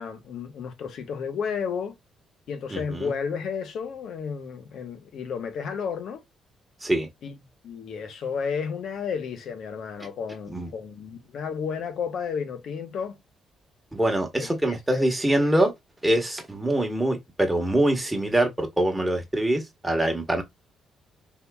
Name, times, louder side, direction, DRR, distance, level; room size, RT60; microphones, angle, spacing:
voice 1, 0.0-1.9 2.5-6.2 7.2-7.3 7.6-13.2 14.4-15.1 15.4-15.5, left 6 dB, 70° left, 0.9 m, -32 dB
voice 2, 2.7-3.1 6.8-7.1 10.5-10.7 13.9-15.7 16.0-20.4, right 1 dB, 10° right, 1.1 m, -24 dB
3.8 x 2.8 x 2.3 m
cardioid pair, 90°, 0 cm